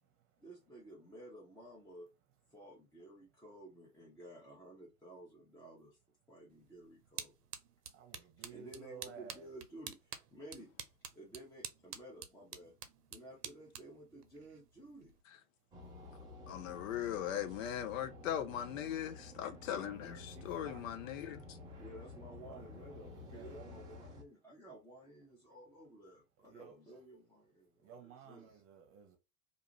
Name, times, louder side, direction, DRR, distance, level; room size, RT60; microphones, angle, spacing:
voice 1, 0.4-2.1 2.5-6.0 6.3-7.3 8.5-10.7 11.1-12.7 13.1-15.1 21.8-28.6, right 1 dB, 5° left, 0.8 m, -54 dB
sound 1, 6.5-15.2, right 8 dB, 75° right, 0.7 m, -50 dB
voice 2, 7.9-9.5 20.0-20.9 22.4-23.7 26.4-27.0 27.8-29.2, right 7 dB, 30° right, 0.9 m, -55 dB
sound 2, 15.7-24.2, left 2 dB, 10° right, 0.3 m, -51 dB
voice 3, 16.5-21.6, left 10 dB, 55° left, 0.7 m, -39 dB
2.6 x 2.4 x 2.9 m
hypercardioid pair, 100°, 47 cm